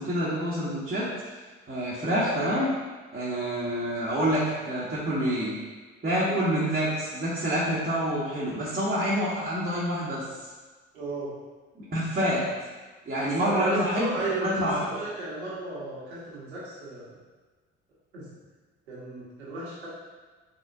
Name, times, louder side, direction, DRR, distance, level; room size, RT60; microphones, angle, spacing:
voice 1, 0.0-1.3 1.7-2.7 3.1-5.5 6.0-10.3 11.7-12.5 13.0-14.1 14.4-14.8, equal, 25° right, -8 dB, 1.2 m, -27 dB
voice 2, 10.9-11.3 13.2-14.5 14.8-17.2 18.1-18.3 18.9-19.9, right 2 dB, 85° right, -8 dB, 1.2 m, -34 dB
4.1 x 3.6 x 2.6 m, 1.3 s
hypercardioid pair, 55°, 31 cm